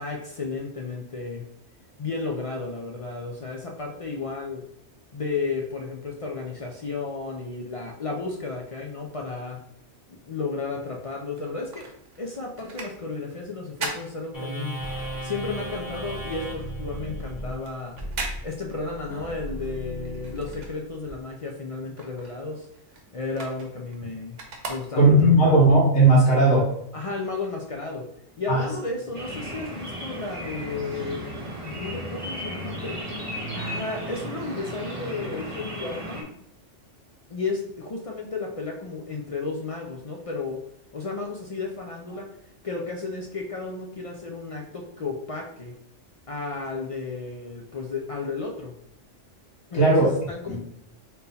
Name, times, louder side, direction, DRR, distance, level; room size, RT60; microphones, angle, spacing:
voice 1, 0.0-1.4 2.0-4.6 5.1-9.6 10.1-11.9 12.2-14.8 15.2-18.0 18.4-22.7 23.1-24.4 24.7-25.1 26.9-28.1 28.4-31.3 31.6-33.0 33.5-36.4 37.3-40.6 40.9-42.3 42.6-45.7 46.3-48.7 49.7-50.6, left 3 dB, 50° left, 0 dB, 0.4 m, -33 dB
sound 1, 11.4-15.0 15.3-21.3 21.6-25.4 25.9-26.0, right 3 dB, 60° right, 1.0 m, -39 dB
sound 2, 14.3-21.1, right 1 dB, 15° left, 1.1 m, -35 dB
voice 2, 24.9-26.7 28.5-28.6 49.7-50.1 50.5-50.6, right 2 dB, 90° left, -5 dB, 1.7 m, -17 dB
sound 3, 29.1-36.2, equal, 30° right, 0.9 m, -35 dB
3.7 x 2.8 x 4.0 m, 0.75 s
omnidirectional pair, 1.2 m